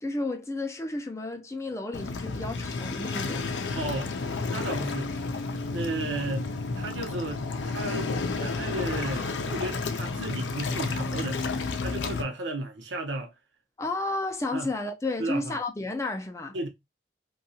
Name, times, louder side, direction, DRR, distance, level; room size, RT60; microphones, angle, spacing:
voice 1, 0.0-3.5 13.8-16.6, left 2 dB, 15° left, 0.4 m, -32 dB
Waves surf, 1.9-12.2, left 3 dB, 85° left, 0.5 m, -31 dB
voice 2, 3.8-4.2 4.5-5.2 5.5-8.1 8.4-11.4 11.8-13.3 14.5-14.7 15.2-15.5 16.5-16.7, right 2 dB, 85° right, 0.7 m, -34 dB
2.8 x 2.3 x 2.6 m
head